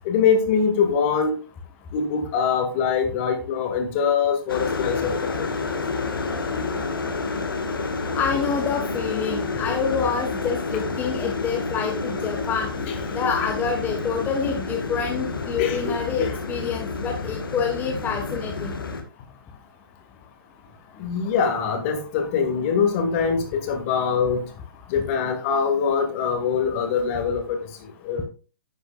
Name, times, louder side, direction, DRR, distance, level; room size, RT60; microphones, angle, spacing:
voice 1, 0.1-1.3 1.9-5.1 5.4-5.5 12.9-13.0 15.6-16.3 21.0-24.4 24.9-27.6 28.0-28.2, left 6 dB, 35° left, 5 dB, 1.8 m, -23 dB
sound 1, 4.5-19.0, left 4 dB, 70° left, 1.5 m, -29 dB
voice 2, 8.1-18.7, left 6 dB, 15° left, 1 dB, 1.1 m, -27 dB
10.5 x 7.8 x 2.3 m, 0.35 s
figure-of-eight pair, 120°, 12 cm